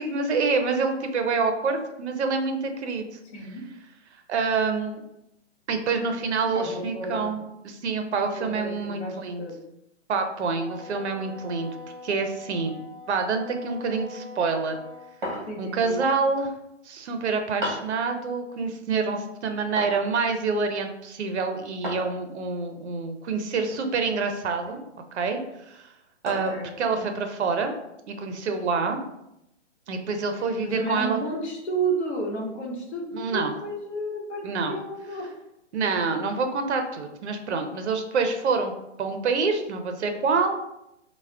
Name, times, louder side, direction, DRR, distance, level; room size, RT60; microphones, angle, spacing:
voice 1, 0.0-3.2 4.3-5.0 5.7-9.4 10.1-11.7 12.0-12.8 13.1-14.8 15.6-16.5 16.9-24.8 25.1-25.4 25.7-25.9 26.2-26.5 26.8-27.7 28.1-29.0 29.9-31.2 33.1-33.5 34.4-34.8 35.7-38.7 39.0-40.6, right 4 dB, 65° right, 6 dB, 0.5 m, -27 dB
voice 2, 3.3-3.7 6.5-7.4 8.4-9.6 15.4-16.0 26.3-26.7 30.6-35.3, right 2 dB, 60° left, -1 dB, 0.9 m, -32 dB
Wind instrument woodwind instrument, 10.6-15.1, left 2 dB, 20° left, 0.6 m, -43 dB
sound 1, 15.2-15.8 17.6-18.0 19.8-20.1 21.8-22.2 23.7-24.1 24.7-24.9 26.3-26.7, equal, 40° right, 0.8 m, -34 dB
3.3 x 2.1 x 2.4 m, 0.84 s
hypercardioid pair, 175°, 37 cm